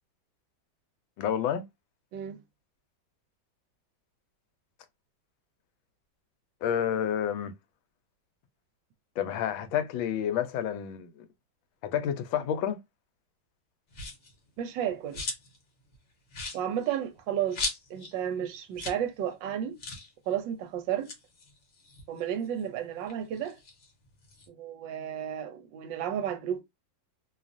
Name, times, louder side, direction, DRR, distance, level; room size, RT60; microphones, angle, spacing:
voice 1, 1.2-1.6 6.6-7.5 9.2-11.3 11.8-12.8, left 9 dB, 80° left, 1.3 m, -29 dB
sound 1, 13.9-14.3 14.8-15.6 15.9-16.0 16.3-18.2 18.4-18.5 18.7-19.1 19.3-19.4 19.8-20.1 20.9-22.6 23.0-24.5, left 3 dB, 50° left, 0.9 m, -38 dB
voice 2, 14.6-15.2 16.5-17.6 17.9-19.8 20.3-21.1 22.1-23.6 24.5-26.6, right 9 dB, 75° right, 1.2 m, -32 dB
3.1 x 2.3 x 2.4 m
omnidirectional pair, 2.2 m